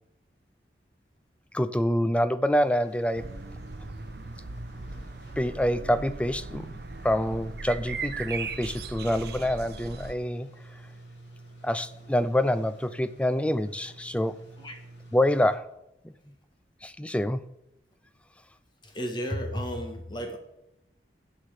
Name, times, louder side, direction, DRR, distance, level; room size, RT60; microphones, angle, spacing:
voice 1, 1.5-3.3 5.4-6.7 7.0-10.5 11.6-14.4 15.1-15.7 16.8-17.4, equal, 5° left, 13 dB, 0.4 m, -26 dB
sound 1, 2.6-15.6, right 2 dB, 80° left, 3.2 m, -49 dB
sound 2, 3.1-10.1, right 4 dB, 55° right, 0.8 m, -38 dB
voice 2, 18.8-20.4, equal, 25° left, 4 dB, 1.6 m, -33 dB
16.0 x 5.8 x 4.9 m, 0.84 s
head